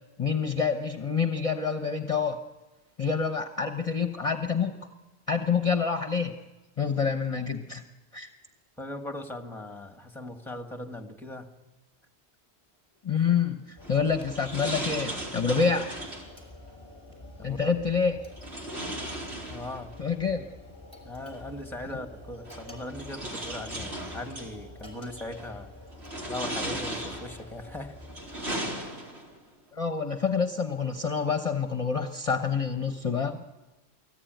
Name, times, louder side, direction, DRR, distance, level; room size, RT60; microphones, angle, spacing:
voice 1, 0.2-2.4 3.0-4.8 5.3-6.4 6.8-7.8 8.1-8.3 13.0-15.9 17.4-18.2 20.0-20.4 21.9-22.0 29.7-33.4, left 5 dB, 30° left, 5 dB, 1.1 m, -27 dB
voice 2, 8.8-11.5 17.1-17.8 19.5-19.9 21.0-25.7 26.3-28.0, left 1 dB, ahead, 5 dB, 1.9 m, -39 dB
sound 1, 13.8-28.6, left 2 dB, 25° right, 5.7 m, -47 dB
sound 2, 13.8-16.3 18.4-20.0 21.4-21.5 22.5-24.5 25.2-25.6 26.0-27.5 28.0-29.4, right 1 dB, 75° right, 4.7 m, -36 dB
29.0 x 19.0 x 9.3 m, 1.2 s
omnidirectional pair, 1.1 m